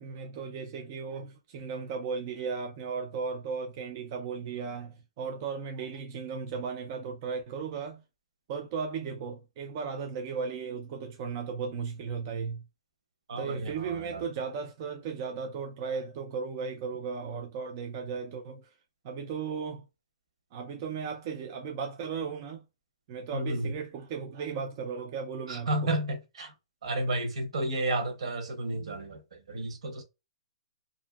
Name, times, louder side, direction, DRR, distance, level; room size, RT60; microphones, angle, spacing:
voice 1, 0.0-8.0 8.5-12.6 13.4-18.7 19.0-19.9 20.5-22.6 23.1-25.7 28.7-29.1, right 5 dB, 30° right, 0.3 m, -36 dB
voice 2, 13.3-14.3 23.3-23.8 25.5-26.5 26.8-30.0, right 1 dB, 65° right, 0.9 m, -32 dB
2.6 x 2.5 x 2.2 m
hypercardioid pair, 170°, 3 cm